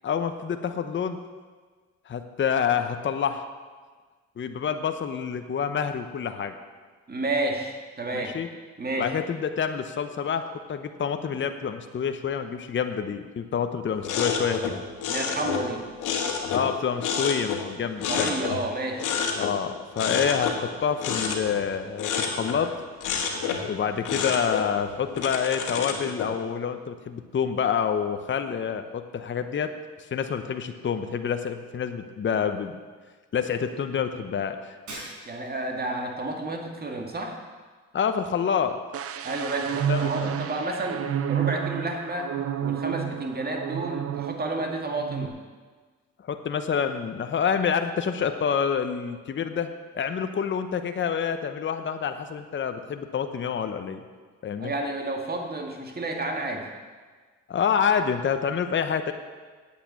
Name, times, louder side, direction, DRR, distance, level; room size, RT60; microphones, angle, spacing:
voice 1, 0.0-1.2 2.1-3.4 4.4-6.5 8.1-8.5 9.0-14.6 16.5-18.3 19.4-22.7 23.6-29.7 30.1-32.7 33.3-34.6 37.9-38.8 39.9-40.3 46.3-49.7 49.9-54.0 54.4-54.7 57.5-59.1, left 7 dB, 40° left, 8 dB, 0.9 m, -27 dB
voice 2, 7.1-8.3 8.8-9.2 15.1-15.9 18.1-19.1 35.3-37.4 39.2-42.3 42.6-45.3 54.6-56.7, right 2 dB, 30° right, 2 dB, 2.1 m, -31 dB
sound 1, 14.0-16.7 17.0-18.7 19.0-19.6 19.9-22.7 23.0-23.7 24.0-26.3, left 6 dB, 90° left, 1.7 m, -29 dB
Shatter, 34.9-35.7, right 1 dB, 75° right, 4.6 m, -40 dB
sound 2, 38.9-44.7 45.0-45.3, right 9 dB, 50° right, 0.7 m, -30 dB
8.7 x 8.5 x 8.3 m, 1.5 s
cardioid pair, 90°, 30 cm